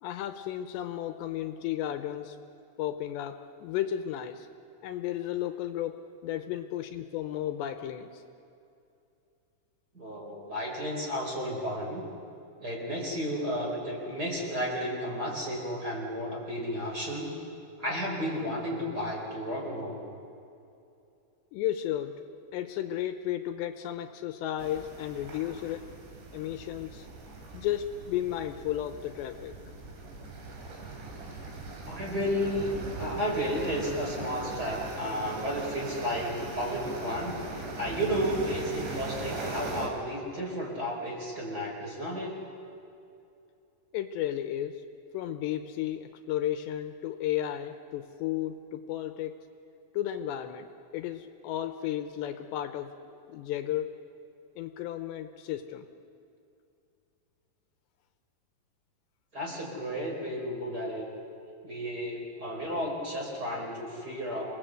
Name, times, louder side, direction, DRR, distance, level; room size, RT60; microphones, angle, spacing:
voice 1, 0.0-2.4 2.8-4.5 4.8-8.2 21.5-22.2 22.5-25.8 26.3-27.1 27.5-29.5 43.9-44.8 45.1-49.4 49.9-50.7 50.9-53.9 54.6-55.9, left 11 dB, 80° left, 7 dB, 3.0 m, -33 dB
voice 2, 9.9-12.0 12.6-17.3 17.8-20.0 31.9-37.3 37.7-42.4 59.3-61.1 61.6-64.4, equal, 20° right, -1 dB, 4.8 m, -33 dB
sound 1, 24.6-39.9, right 2 dB, 70° right, 5.8 m, -40 dB
27.5 x 20.0 x 8.1 m, 2.6 s
omnidirectional pair, 5.2 m